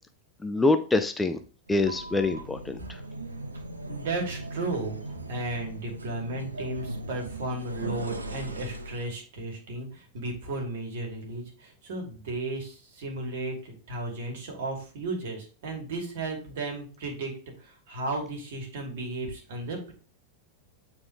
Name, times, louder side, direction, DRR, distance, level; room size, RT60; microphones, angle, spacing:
voice 1, 0.4-1.4 1.7-2.8, left 2 dB, 10° left, 8 dB, 0.5 m, -25 dB
sound 1, 1.7-9.2, right 2 dB, 80° right, 0.8 m, -38 dB
voice 2, 3.7-5.0 5.3-17.3 17.6-19.9, right 2 dB, 55° right, 1 dB, 2.5 m, -34 dB
8.6 x 4.4 x 3.3 m, 0.38 s
figure-of-eight pair, 90°, 0 cm